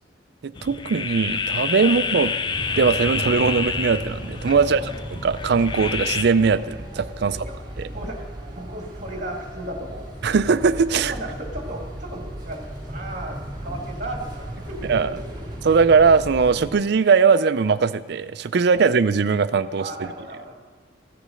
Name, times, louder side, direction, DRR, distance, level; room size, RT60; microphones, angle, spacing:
voice 1, 0.4-2.3 2.8-4.8 5.1-7.4 7.8-7.9 10.2-11.1 14.9-15.1 15.6-20.1, right 5 dB, 60° right, 13 dB, 0.4 m, -20 dB
sound 1, 0.5-6.2, left 5 dB, 25° left, 0.4 m, -28 dB
sound 2, 2.5-16.7, right 1 dB, 25° right, 3.4 m, -35 dB
voice 2, 4.5-4.9 7.2-7.5 7.9-8.2 8.5-10.1 10.9-15.4 18.7-18.9 19.8-20.6, right 1 dB, 40° right, 1 dB, 2.2 m, -36 dB
15.0 x 6.8 x 6.3 m, 1.5 s
head